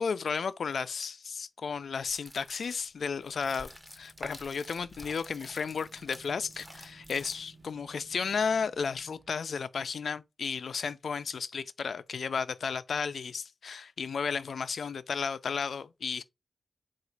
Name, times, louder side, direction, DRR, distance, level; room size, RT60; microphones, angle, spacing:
voice 1, 0.0-3.7 4.0-16.2, left 5 dB, 75° left, 0.3 m, -33 dB
sound 1, 2.0-7.7, equal, ahead, 0.6 m, -48 dB
sound 2, 3.1-9.4, right 3 dB, 85° right, 1.1 m, -58 dB
3.9 x 2.4 x 4.5 m
wide cardioid pair, 170°, 0 cm